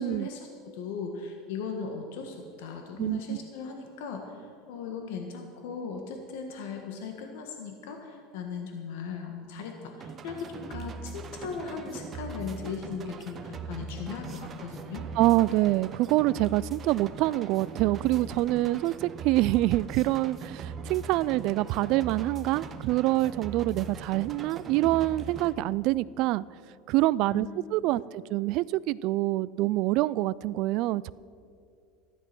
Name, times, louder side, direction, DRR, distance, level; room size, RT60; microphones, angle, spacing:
voice 1, 0.0-15.1 27.2-27.6 27.9-28.1, left 5 dB, 75° left, 3 dB, 1.5 m, -38 dB
voice 2, 3.0-3.4 15.2-26.4 26.9-31.1, right 17 dB, 55° right, 20 dB, 0.3 m, -26 dB
sound 1, 10.0-25.5, right 4 dB, 30° right, 0.9 m, -41 dB
13.5 x 11.0 x 6.1 m, 2.4 s
supercardioid pair, 125°, 0 cm